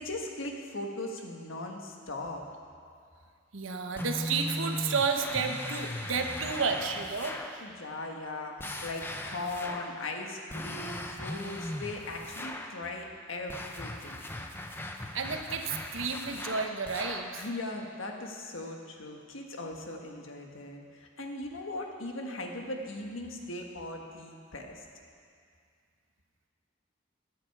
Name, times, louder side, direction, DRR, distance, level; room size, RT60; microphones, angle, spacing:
voice 1, 0.0-2.5 7.6-14.2 17.3-24.8, left 2 dB, 85° left, 2 dB, 1.5 m, -39 dB
voice 2, 3.5-7.7 15.1-17.4, right 5 dB, 80° right, 5 dB, 1.0 m, -31 dB
sound 1, 3.9-7.6 8.6-10.0 10.5-12.8 13.5-17.4, left 1 dB, 10° left, 0.6 m, -39 dB
16.0 x 10.5 x 4.8 m, 2.2 s
head